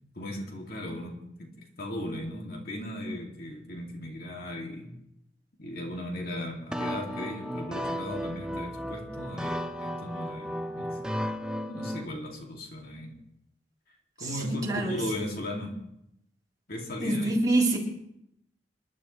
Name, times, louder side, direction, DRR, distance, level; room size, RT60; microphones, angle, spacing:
voice 1, 0.1-1.5 1.8-4.9 5.6-11.0 11.7-13.1 14.2-15.8 16.7-17.3, left 1 dB, 55° left, 0 dB, 2.7 m, -37 dB
sound 1, 6.7-12.1, equal, 5° right, 0.6 m, -34 dB
voice 2, 14.2-15.0 17.0-17.8, right 2 dB, 20° right, -4 dB, 3.9 m, -26 dB
27.5 x 11.5 x 3.3 m, 0.78 s
head